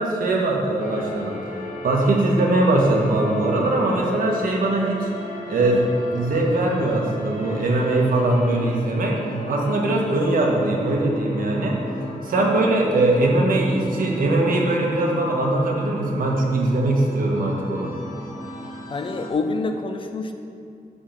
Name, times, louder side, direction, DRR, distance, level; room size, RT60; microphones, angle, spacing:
voice 1, 0.0-5.1 5.5-9.2 9.5-11.8 12.2-17.9, right 2 dB, 85° right, 0 dB, 1.5 m, -21 dB
sound 1, 0.8-19.3, equal, 75° left, 1.6 m, -35 dB
voice 2, 18.9-20.3, left 3 dB, 40° left, 6 dB, 0.7 m, -26 dB
11.0 x 3.8 x 7.4 m, 2.4 s
wide cardioid pair, 160°, 14 cm